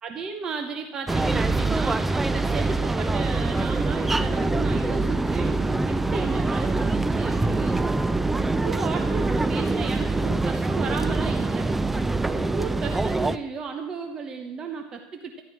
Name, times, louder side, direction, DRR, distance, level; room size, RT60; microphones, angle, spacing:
voice 1, 0.0-7.9 8.4-11.7 12.3-15.4, right 5 dB, 25° right, 4 dB, 1.0 m, -34 dB
sound 1, 1.1-13.4, right 2 dB, 10° right, 0.4 m, -24 dB
12.5 x 11.5 x 6.0 m, 1.1 s
supercardioid pair, 145°, 3 cm